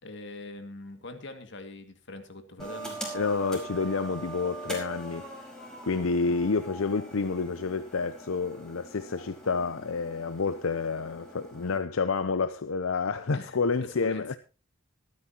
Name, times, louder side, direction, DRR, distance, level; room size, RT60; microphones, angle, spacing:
voice 1, 0.0-3.0 6.2-6.4 13.3-14.4, left 2 dB, 60° left, 2.2 m, -43 dB
sound 1, 2.6-11.8, right 2 dB, 5° left, 4.8 m, -42 dB
voice 2, 3.1-5.3 5.8-14.4, left 4 dB, 85° left, 0.7 m, -29 dB
24.5 x 9.6 x 2.9 m
head